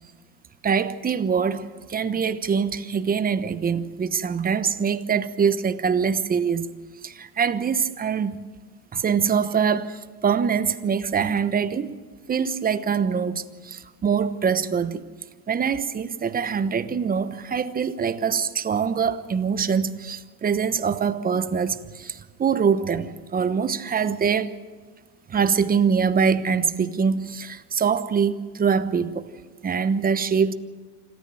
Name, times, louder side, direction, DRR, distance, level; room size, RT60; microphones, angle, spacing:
voice 1, 0.6-6.7 7.0-8.4 8.9-12.0 12.3-15.0 15.5-24.5 25.3-29.3 29.6-30.5, right 6 dB, 20° right, 1.0 m, -24 dB
26.0 x 14.0 x 7.8 m
supercardioid pair, 115°, 46 cm